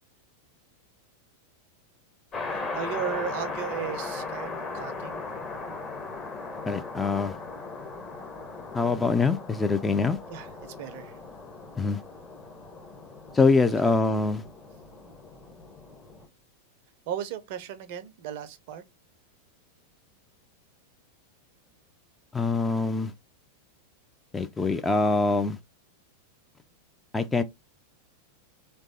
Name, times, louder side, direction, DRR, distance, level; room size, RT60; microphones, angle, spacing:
sound 1, 2.3-16.3, left 3 dB, 30° left, 0.8 m, -38 dB
voice 1, 2.5-5.2 10.3-11.2 13.8-14.0 17.1-18.8, right 9 dB, 50° right, 0.4 m, -36 dB
voice 2, 6.7-7.3 8.7-10.2 11.8-12.0 13.3-14.4 22.3-23.1 24.3-25.6 27.1-27.4, left 3 dB, 10° left, 0.3 m, -24 dB
3.1 x 2.3 x 2.5 m
figure-of-eight pair, 90°, 0 cm